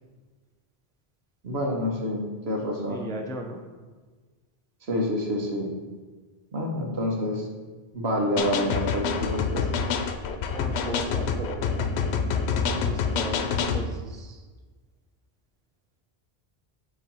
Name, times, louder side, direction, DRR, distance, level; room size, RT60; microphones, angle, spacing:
voice 1, 1.4-3.0 4.9-5.7 6.5-7.5 7.9-9.9, equal, 80° right, 1 dB, 1.4 m, -28 dB
voice 2, 2.9-3.6 10.5-12.0 12.7-14.4, equal, 5° left, 2 dB, 0.4 m, -37 dB
sound 1, 8.4-13.9, left 6 dB, 85° left, 0.9 m, -27 dB
7.3 x 3.2 x 5.4 m, 1.4 s
omnidirectional pair, 1.1 m